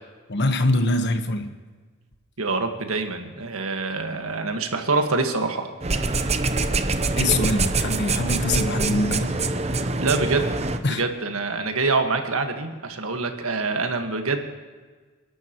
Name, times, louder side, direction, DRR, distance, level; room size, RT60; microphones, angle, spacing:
voice 1, 0.3-1.5 7.2-9.3 10.8-11.0, left 2 dB, 55° left, 7 dB, 1.2 m, -23 dB
voice 2, 2.4-5.7 10.0-10.5 10.9-14.4, right 3 dB, 75° right, 5 dB, 1.6 m, -25 dB
sound 1, 5.8-10.8, right 3 dB, 30° right, 0.7 m, -24 dB
29.0 x 12.0 x 3.1 m, 1.4 s
head